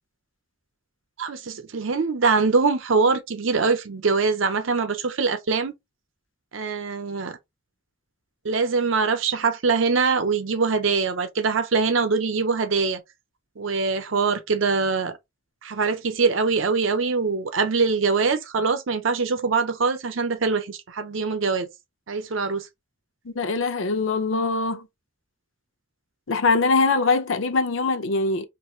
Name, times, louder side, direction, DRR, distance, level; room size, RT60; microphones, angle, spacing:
voice 1, 1.2-5.7 6.5-7.4 8.4-13.0 13.6-15.2 15.6-21.7 22.1-22.7, right 4 dB, 80° right, 0.7 m, -23 dB
voice 2, 23.2-24.9 26.3-28.4, left 3 dB, 80° left, 0.6 m, -22 dB
4.3 x 2.6 x 2.4 m
head